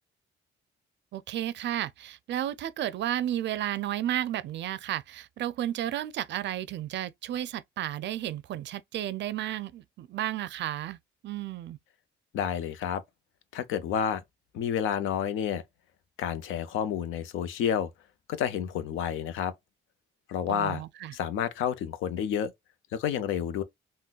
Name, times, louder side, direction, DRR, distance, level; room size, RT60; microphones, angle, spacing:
voice 1, 1.1-11.0 11.2-11.8 20.5-21.1, right 12 dB, 65° right, 0.4 m, -32 dB
voice 2, 12.3-13.0 13.5-14.2 14.5-15.6 16.2-17.9 18.3-19.5 20.3-20.8 21.1-22.5 22.9-23.6, left 8 dB, 85° left, 0.6 m, -29 dB
3.8 x 2.1 x 2.3 m
cardioid pair, 90°, 20 cm